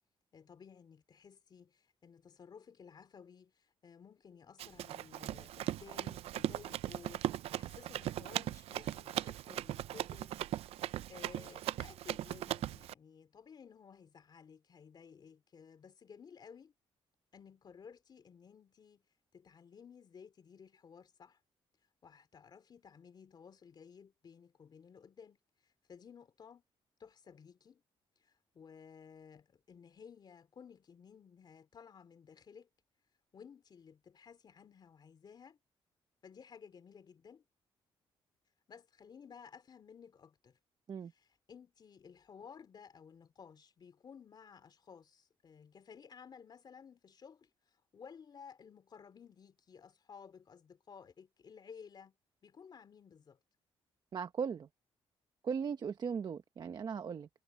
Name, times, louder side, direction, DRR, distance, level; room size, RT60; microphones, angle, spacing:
voice 1, 0.3-7.3 7.5-10.3 10.7-16.7 17.3-19.0 19.3-21.4 22.0-25.4 25.9-26.6 27.0-27.8 28.2-32.7 33.3-35.6 36.2-37.4 38.7-40.6 41.1-47.5 47.9-52.1 52.4-53.4, left 6 dB, 45° left, 3.3 m, -56 dB
Run, 4.6-12.9, right 13 dB, 90° right, 0.5 m, -39 dB
voice 2, 54.1-54.7 55.4-57.3, right 6 dB, 45° right, 1.1 m, -38 dB
cardioid pair, 120°, 10 cm